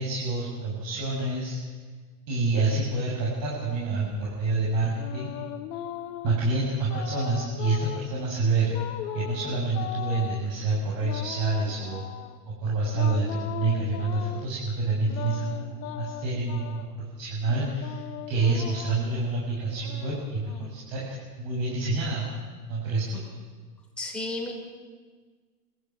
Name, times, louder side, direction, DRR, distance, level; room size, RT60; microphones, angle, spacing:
voice 1, 0.0-1.6 2.3-5.3 6.2-8.7 9.1-12.0 12.6-18.0 18.3-22.2 22.7-23.2, right 3 dB, 45° right, -6 dB, 7.9 m, -27 dB
sound 1, 4.1-6.4 6.9-8.1 8.7-10.4 11.0-12.4 12.9-14.5 15.0-16.9 17.5-19.1 19.7-21.1, left 11 dB, 45° left, 1.9 m, -38 dB
voice 2, 24.0-24.5, left 2 dB, ahead, -2 dB, 6.0 m, -32 dB
26.5 x 14.5 x 9.5 m, 1.5 s
hypercardioid pair, 105°, 48 cm